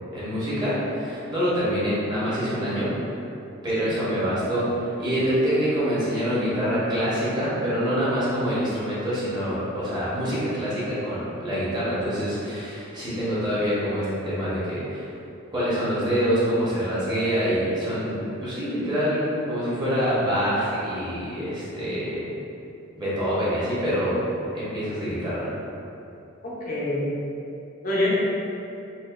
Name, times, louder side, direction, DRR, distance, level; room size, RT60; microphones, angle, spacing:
voice 1, 0.0-2.9 3.6-15.0 15.5-22.2 23.0-24.2 24.5-25.5, equal, 20° right, -10 dB, 0.9 m, -25 dB
voice 2, 26.4-27.1 27.8-28.1, left 1 dB, 40° left, -7 dB, 0.5 m, -26 dB
4.0 x 2.5 x 2.4 m, 2.8 s
head